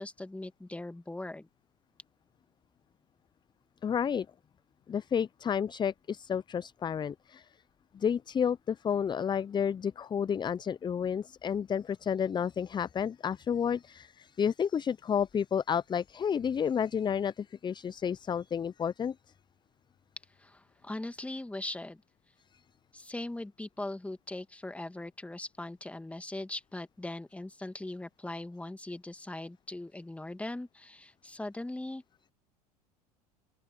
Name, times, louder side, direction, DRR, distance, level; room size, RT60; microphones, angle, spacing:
voice 1, 0.0-1.5 20.4-22.0 22.9-32.0, left 2 dB, 5° left, 2.2 m, -40 dB
voice 2, 3.8-4.3 4.9-7.5 7.9-19.1, left 7 dB, 20° left, 0.8 m, -31 dB
open air
figure-of-eight pair, 75°, 20 cm